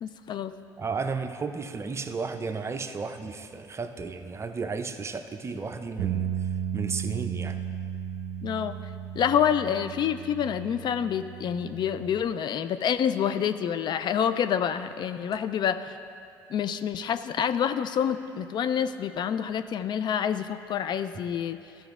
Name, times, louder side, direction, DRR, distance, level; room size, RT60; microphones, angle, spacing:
voice 1, 0.0-0.5 8.4-8.7 9.2-15.9 16.5-21.6, left 8 dB, 50° left, 11 dB, 0.4 m, -27 dB
voice 2, 0.8-6.3 6.7-7.6, right 4 dB, 30° right, 7 dB, 0.6 m, -33 dB
sound 1, 6.0-12.2, right 9 dB, 80° right, 0.6 m, -34 dB
12.5 x 6.0 x 3.6 m, 2.5 s
supercardioid pair, 70°, 10 cm